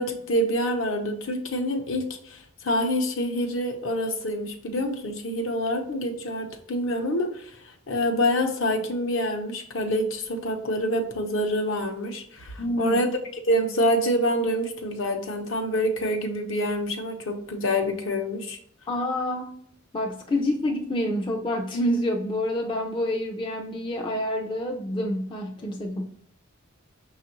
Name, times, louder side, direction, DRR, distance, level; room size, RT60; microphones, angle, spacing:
voice 1, 0.0-13.1 13.5-18.6, equal, 65° left, 4 dB, 0.7 m, -26 dB
voice 2, 12.6-13.0 18.9-19.5 19.9-26.0, left 1 dB, 25° left, 0 dB, 0.4 m, -27 dB
5.9 x 2.4 x 2.9 m, 0.65 s
head